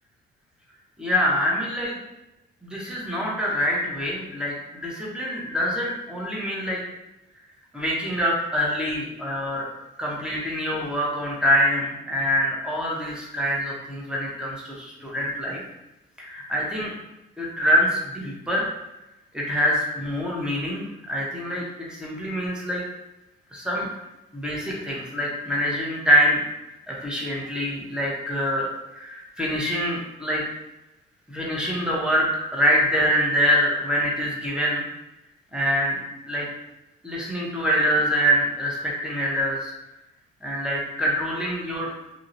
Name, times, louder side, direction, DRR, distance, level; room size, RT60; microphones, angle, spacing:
voice 1, 1.0-2.0 2.6-6.8 7.7-9.7 10.0-15.6 16.2-16.9 17.4-18.7 19.3-21.6 21.9-22.8 23.5-23.9 24.3-26.4 26.9-30.4 31.3-34.8 35.5-36.0 36.3-36.5 37.0-39.7 40.4-41.9, equal, 5° right, -5 dB, 0.6 m, -25 dB
2.6 x 2.0 x 2.5 m, 0.96 s
cardioid pair, 90°, 20 cm